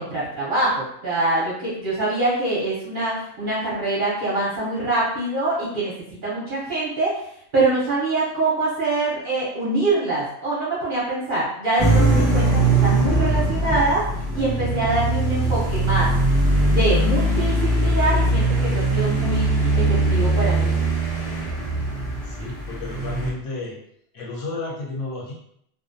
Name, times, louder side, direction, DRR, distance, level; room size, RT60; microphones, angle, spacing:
voice 1, 0.0-5.9 6.2-7.3 7.5-14.1 14.3-16.1 16.6-20.8, right 2 dB, 50° right, -7 dB, 0.7 m, -24 dB
sound 1, 11.8-23.3, right 2 dB, 5° left, 1.1 m, -21 dB
voice 2, 22.2-23.8 24.1-25.3, left 2 dB, 65° left, -4 dB, 1.0 m, -32 dB
2.5 x 2.2 x 2.5 m, 0.71 s
omnidirectional pair, 1.4 m